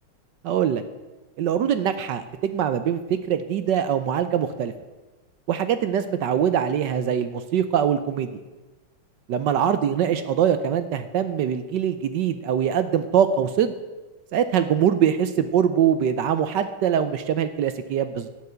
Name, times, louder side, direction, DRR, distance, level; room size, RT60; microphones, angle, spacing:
voice 1, 0.4-0.8 1.4-4.7 5.5-8.4 9.3-13.7 14.3-18.3, right 8 dB, 70° right, 11 dB, 1.2 m, -23 dB
11.5 x 8.2 x 7.8 m, 1.2 s
omnidirectional pair, 2.3 m